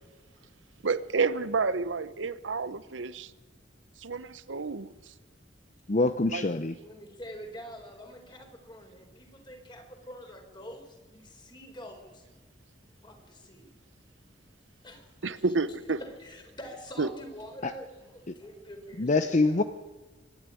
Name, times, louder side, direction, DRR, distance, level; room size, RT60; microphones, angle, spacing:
voice 1, 0.8-3.3 4.0-5.1 6.3-6.5 15.2-16.0 17.0-17.1, right 4 dB, 80° right, 15 dB, 0.9 m, -30 dB
voice 2, 5.9-6.7 17.6-17.7 19.0-19.6, left 3 dB, 40° left, 10 dB, 0.7 m, -25 dB
voice 3, 6.8-12.2 13.0-13.7 14.8-15.1 16.0-19.6, equal, 25° left, 4 dB, 4.3 m, -46 dB
24.5 x 11.5 x 10.0 m, 1.2 s
head